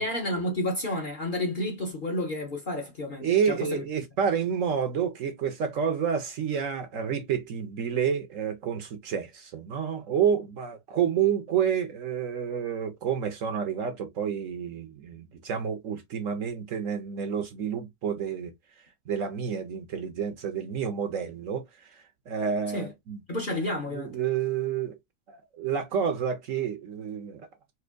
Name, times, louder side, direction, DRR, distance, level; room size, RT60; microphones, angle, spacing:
voice 1, 0.0-3.8 22.7-22.9 23.3-24.1, left 1 dB, 40° left, 1.0 m, -30 dB
voice 2, 3.2-23.2 23.9-25.0 25.3-27.5, right 7 dB, 60° right, 1.0 m, -29 dB
4.4 x 2.7 x 2.5 m
omnidirectional pair, 1.7 m